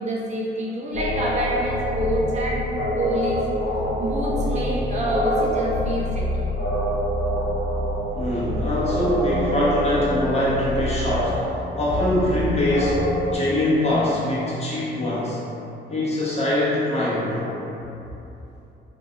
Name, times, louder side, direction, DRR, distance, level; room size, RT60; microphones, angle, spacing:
voice 1, 0.0-2.7 3.0-3.4 4.0-6.5, right 1 dB, 35° right, -6 dB, 0.6 m, -27 dB
sound 1, 0.9-13.4, equal, 85° left, 0.7 m, -26 dB
voice 2, 8.1-13.0 13.3-15.4 15.9-17.5, left 1 dB, 35° left, -8 dB, 0.9 m, -23 dB
3.1 x 2.5 x 2.6 m, 2.9 s
cardioid pair, 90°, 20 cm